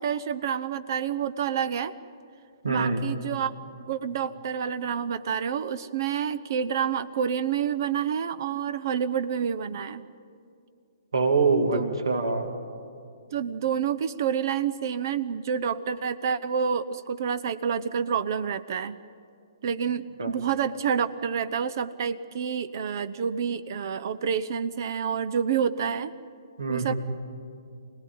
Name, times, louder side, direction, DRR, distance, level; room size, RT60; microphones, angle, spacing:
voice 1, 0.0-1.9 2.7-3.5 3.9-10.0 11.7-11.9 13.3-19.0 19.6-26.1 26.7-26.9, right 7 dB, 45° right, 13 dB, 0.7 m, -28 dB
voice 2, 2.6-3.0 11.1-12.5 20.2-20.4 26.6-26.9, right 4 dB, 70° right, 5 dB, 2.7 m, -24 dB
26.0 x 19.0 x 9.5 m, 2.4 s
figure-of-eight pair, 125°, 3 cm